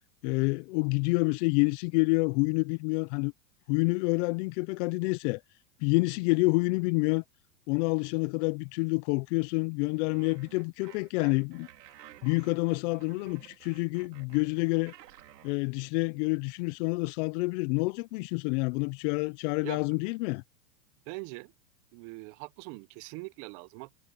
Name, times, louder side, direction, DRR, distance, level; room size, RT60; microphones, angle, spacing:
voice 1, 0.2-3.3 3.7-5.4 5.8-7.2 7.7-11.7 12.2-14.9 15.4-20.4, left 28 dB, 45° left, 0.8 m, -28 dB
sound 1, 10.1-15.6, right 12 dB, 80° right, 3.9 m, -53 dB
voice 2, 19.6-20.0 21.1-21.5 21.9-24.0, right 27 dB, 45° right, 1.2 m, -42 dB
hypercardioid pair, 125°, 49 cm